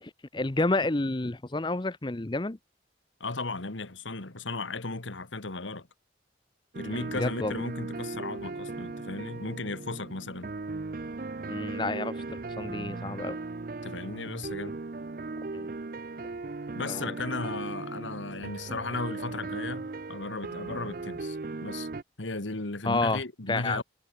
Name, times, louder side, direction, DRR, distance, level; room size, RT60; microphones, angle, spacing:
voice 1, 0.0-2.6 6.8-7.6 11.5-13.4 15.5-15.7 16.8-17.2 22.8-23.2 23.5-23.8, left 2 dB, 25° left, 0.7 m, -30 dB
voice 2, 3.2-5.9 6.8-10.5 13.8-14.8 16.8-21.4 21.6-21.9 22.2-23.8, left 3 dB, 85° left, 1.9 m, -35 dB
sound 1, 6.7-22.0, right 3 dB, 50° right, 0.6 m, -37 dB
head